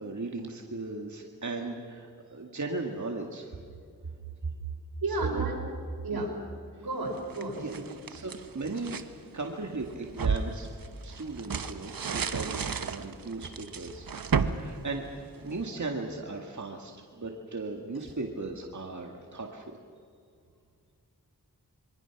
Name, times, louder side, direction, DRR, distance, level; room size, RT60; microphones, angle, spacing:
voice 1, 0.0-3.6 5.1-5.4 6.1-6.3 7.6-7.8 8.0-9.0 9.3-10.7 11.0-14.1 14.6-15.0 15.4-19.8, right 3 dB, 55° right, 2 dB, 2.1 m, -37 dB
voice 2, 5.0-5.6 6.0-6.3 6.8-7.8, right 3 dB, 85° right, 0 dB, 5.2 m, -31 dB
sound 1, 7.1-9.1 9.6-15.7, right 5 dB, 70° right, 1.1 m, -33 dB
27.0 x 23.5 x 6.1 m, 2.3 s
cardioid pair, 45°, 36 cm